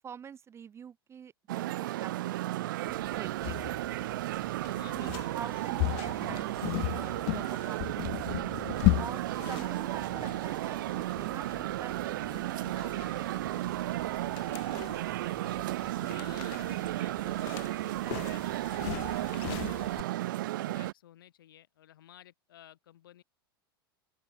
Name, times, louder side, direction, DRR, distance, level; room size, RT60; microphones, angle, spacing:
voice 1, 0.0-2.1 2.4-4.3 4.9-8.1 9.0-13.7, right 7 dB, 20° right, 0.8 m, -47 dB
sound 1, 1.5-20.9, right 16 dB, 60° right, 0.4 m, -34 dB
sound 2, 2.9-20.0, left 35 dB, 45° left, 0.4 m, -37 dB
voice 2, 4.6-5.5 8.9-9.3 16.1-20.2 20.6-23.2, left 12 dB, 65° left, 2.5 m, -54 dB
open air
figure-of-eight pair, 90°, 12 cm